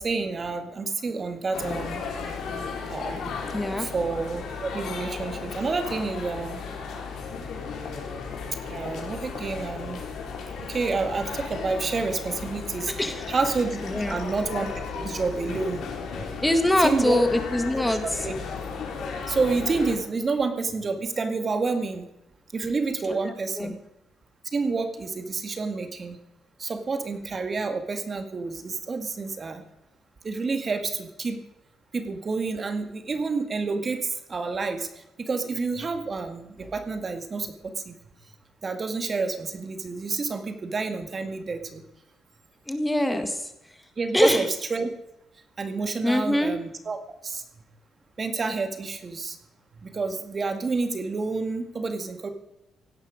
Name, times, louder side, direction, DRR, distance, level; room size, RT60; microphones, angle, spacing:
voice 1, 0.0-2.0 2.9-3.3 3.8-6.6 8.7-10.0 10.6-12.9 13.3-14.7 14.9-15.8 16.8-17.2 17.9-18.4 19.3-22.1 22.5-23.8 24.5-26.2 26.6-29.6 30.2-31.4 31.9-34.9 35.2-38.0 38.6-41.8 44.0-44.9 45.6-47.0 47.2-47.4 48.2-49.4 49.8-52.3, right 4 dB, 40° right, 7 dB, 2.0 m, -29 dB
sound 1, 1.5-19.9, left 5 dB, 75° left, 4.1 m, -35 dB
voice 2, 3.5-3.9 12.9-13.3 13.8-14.2 16.4-18.0 23.0-23.2 23.6-23.7 42.7-43.5 44.1-44.4 46.0-46.5, left 1 dB, 10° left, 7 dB, 1.8 m, -23 dB
17.0 x 11.5 x 5.2 m, 0.87 s
cardioid pair, 90°, 0 cm